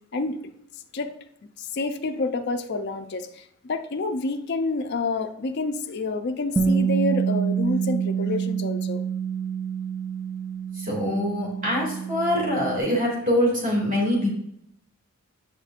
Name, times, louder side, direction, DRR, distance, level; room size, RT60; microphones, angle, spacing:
voice 1, 1.6-9.0, left 3 dB, 50° left, 6 dB, 0.4 m, -28 dB
Bass guitar, 6.6-12.8, right 7 dB, 10° right, 0.4 m, -27 dB
voice 2, 10.8-14.3, left 1 dB, 35° right, -3 dB, 2.3 m, -24 dB
8.0 x 5.0 x 2.4 m, 0.75 s
head